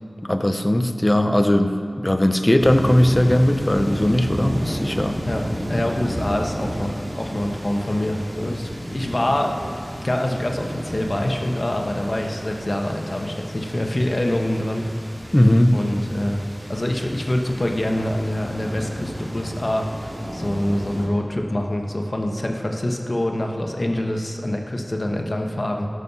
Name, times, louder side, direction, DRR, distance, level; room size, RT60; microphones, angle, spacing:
voice 1, 0.2-5.2 15.3-15.8, left 1 dB, 25° left, 7 dB, 0.7 m, -18 dB
sound 1, 2.6-21.1, equal, 35° right, 2.6 m, -32 dB
voice 2, 5.3-9.7 10.0-14.8 15.7-16.4 16.7-25.9, left 1 dB, 50° left, 2 dB, 1.2 m, -25 dB
18.0 x 6.4 x 5.6 m, 2.4 s
wide cardioid pair, 55°, 0 cm